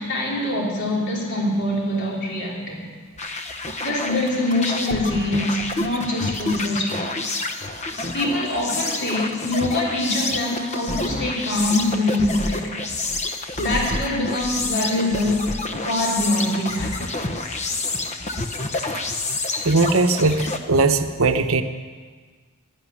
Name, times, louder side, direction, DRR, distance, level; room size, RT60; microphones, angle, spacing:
voice 1, 0.0-2.9 3.8-7.1 8.1-12.8 13.6-15.5 15.9-16.9, left 1 dB, 55° left, -3 dB, 3.9 m, -24 dB
sound 1, 3.2-20.6, left 2 dB, 30° left, 1.0 m, -28 dB
voice 2, 19.6-21.6, right 3 dB, 65° right, 8 dB, 0.9 m, -19 dB
12.0 x 11.0 x 9.9 m, 1.5 s
head